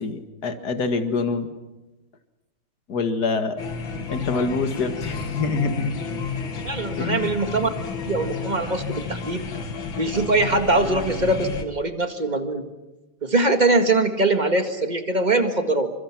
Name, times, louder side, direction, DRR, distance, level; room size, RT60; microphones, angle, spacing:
voice 1, 0.0-1.5 2.9-3.6 4.1-5.9 7.0-7.3, left 4 dB, 50° left, 8 dB, 2.2 m, -25 dB
sound 1, 3.6-11.6, left 5 dB, 65° left, 2.6 m, -31 dB
voice 2, 6.6-7.7 8.1-9.5 10.0-12.6 13.2-15.9, right 2 dB, 20° right, 7 dB, 1.8 m, -22 dB
29.0 x 25.0 x 6.0 m, 1.1 s
omnidirectional pair, 2.3 m